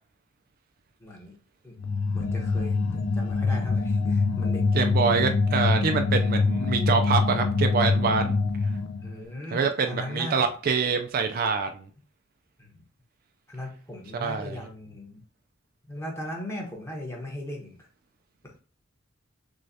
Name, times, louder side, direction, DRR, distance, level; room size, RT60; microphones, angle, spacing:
voice 1, 1.0-1.4 1.6-1.7 2.1-4.7 9.0-10.5 12.6-12.8 13.5-15.2 15.9-17.9 18.4-18.5, left 1 dB, 15° left, -1 dB, 1.0 m, -38 dB
sound 1, 1.8-9.2, left 4 dB, 80° left, 0.5 m, -25 dB
voice 2, 4.7-8.3 9.5-11.8 14.1-14.6, right 5 dB, 45° right, 6 dB, 0.4 m, -25 dB
6.3 x 2.3 x 2.7 m, 0.40 s
head